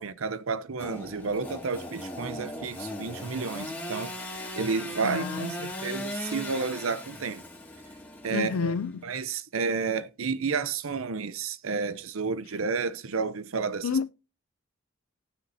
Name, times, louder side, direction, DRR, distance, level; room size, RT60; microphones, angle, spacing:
voice 1, 0.0-4.1 4.6-7.4 8.2-8.7 9.0-13.9, right 4 dB, 70° right, 0.7 m, -31 dB
Engine / Sawing, 0.8-9.0, left 1 dB, 10° left, 2.1 m, -38 dB
voice 2, 5.0-5.9 8.3-9.1 13.8-14.1, left 5 dB, 75° left, 0.4 m, -30 dB
17.5 x 6.4 x 2.7 m
head